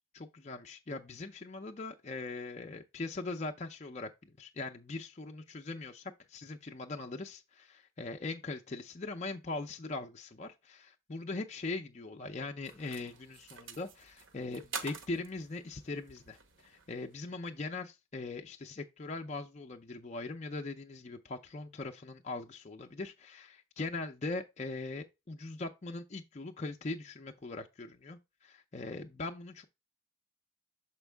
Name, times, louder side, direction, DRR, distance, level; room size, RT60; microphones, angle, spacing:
voice 1, 0.1-29.6, left 3 dB, 35° left, 0.5 m, -41 dB
sound 1, 12.6-17.3, right 5 dB, 70° right, 1.0 m, -48 dB
7.2 x 4.5 x 3.4 m
head